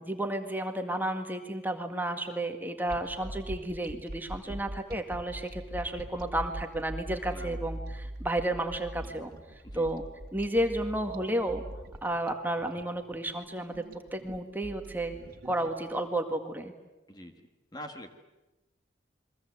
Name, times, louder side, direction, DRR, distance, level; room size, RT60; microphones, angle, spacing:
voice 1, 0.0-9.3 9.7-10.0 10.3-11.6 12.0-13.8 14.1-15.2 15.4-16.7, right 1 dB, 10° right, 5 dB, 1.9 m, -32 dB
sound 1, 2.9-16.0, right 1 dB, 50° right, 2.1 m, -42 dB
voice 2, 17.1-18.1, left 1 dB, 20° left, 5 dB, 1.7 m, -46 dB
29.0 x 23.0 x 8.1 m, 1.1 s
head